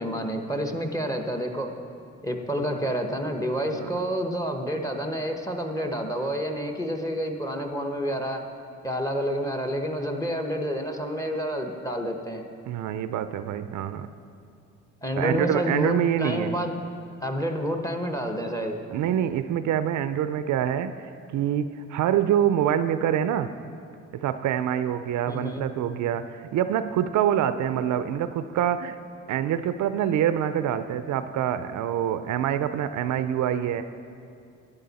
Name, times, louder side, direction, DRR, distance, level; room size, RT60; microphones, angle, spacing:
voice 1, 0.0-1.7 2.2-8.4 8.8-12.4 15.0-16.8 17.2-18.8 25.3-25.6, equal, 10° left, 4 dB, 1.0 m, -29 dB
voice 2, 12.7-14.1 15.2-16.5 18.9-23.5 24.1-29.0 29.3-33.8, right 10 dB, 70° right, 11 dB, 0.5 m, -26 dB
12.0 x 10.0 x 4.1 m, 2.4 s
cardioid pair, 90°, 30 cm